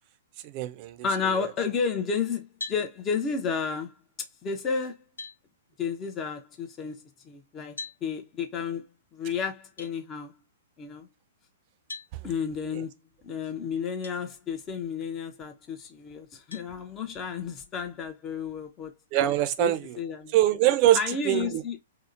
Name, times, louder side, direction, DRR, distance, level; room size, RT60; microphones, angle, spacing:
voice 1, 0.4-1.0 1.2-1.5 12.7-12.8 19.1-20.0 20.3-21.0 21.2-21.6, right 13 dB, 40° right, 0.4 m, -23 dB
voice 2, 1.0-4.0 4.4-5.0 5.8-8.8 9.1-10.4 10.8-11.1 12.2-13.0 13.2-18.9 19.6-20.3 20.9-21.8, left 6 dB, 25° left, 0.5 m, -32 dB
sound 1, 2.6-2.9 4.5-4.6 5.2-5.4 7.8-8.0 9.8-9.9 11.9-12.1 14.0-14.2 14.8-14.9 16.5-16.7, left 3 dB, 85° left, 0.8 m, -39 dB
2.7 x 2.0 x 2.5 m
hypercardioid pair, 125°, 0 cm